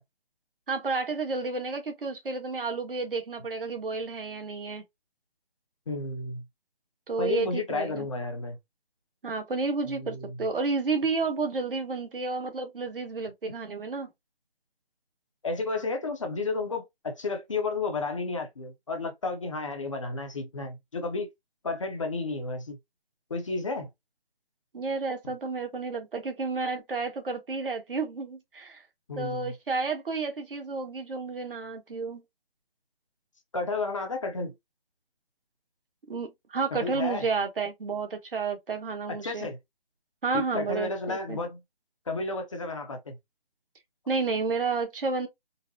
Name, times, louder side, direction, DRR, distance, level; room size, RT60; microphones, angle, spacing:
voice 1, 0.7-4.8 7.1-8.1 9.2-14.1 24.7-28.8 29.1-32.2 36.1-39.5 40.2-41.4 44.1-45.3, right 4 dB, 65° right, 1.2 m, -31 dB
voice 2, 5.9-6.4 7.2-8.6 9.9-10.4 15.4-21.3 21.6-22.8 23.3-23.9 29.1-29.5 33.5-34.5 36.7-37.3 39.2-39.6 40.3-41.6 42.1-43.1, left 3 dB, 30° left, 0.7 m, -32 dB
3.9 x 2.1 x 2.7 m
hypercardioid pair, 165°, 30 cm